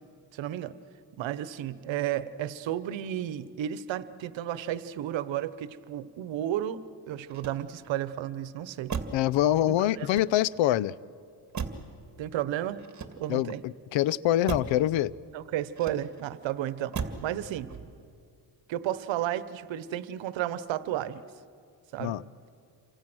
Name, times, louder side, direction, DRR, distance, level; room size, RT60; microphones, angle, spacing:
voice 1, 0.3-0.8 1.2-6.8 7.1-9.0 9.8-10.1 12.2-12.8 13.2-13.6 15.3-17.7 18.7-21.2 21.9-22.2, right 12 dB, 80° right, 15 dB, 1.1 m, -33 dB
Motor vehicle (road), 7.2-8.0 8.9-9.3 10.0-10.7 11.5-12.0 12.8-13.5 14.4-14.8 15.7-16.3 16.9-17.3 17.7-18.1, right 6 dB, 40° right, 2.1 m, -37 dB
voice 2, 9.1-10.9 13.3-15.1 22.0-22.2, left 13 dB, 85° left, 21 dB, 0.7 m, -25 dB
29.0 x 24.5 x 6.2 m, 2.3 s
cardioid pair, 100°, 45 cm